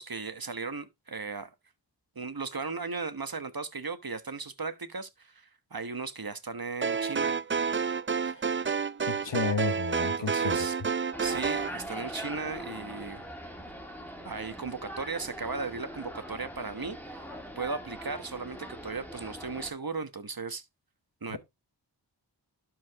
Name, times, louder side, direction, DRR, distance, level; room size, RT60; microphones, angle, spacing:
voice 1, 0.0-1.5 2.1-7.4 9.2-9.3 10.2-10.8 11.2-13.3 14.2-20.6 21.2-21.4, right 4 dB, 55° right, 1.2 m, -36 dB
sound 1, 6.8-11.7, right 5 dB, 30° right, 0.4 m, -29 dB
voice 2, 9.0-10.7 21.3-21.4, left 4 dB, 80° left, 1.1 m, -32 dB
sound 2, 11.1-19.7, equal, 5° left, 2.9 m, -42 dB
11.5 x 4.9 x 3.5 m
wide cardioid pair, 40°, 42 cm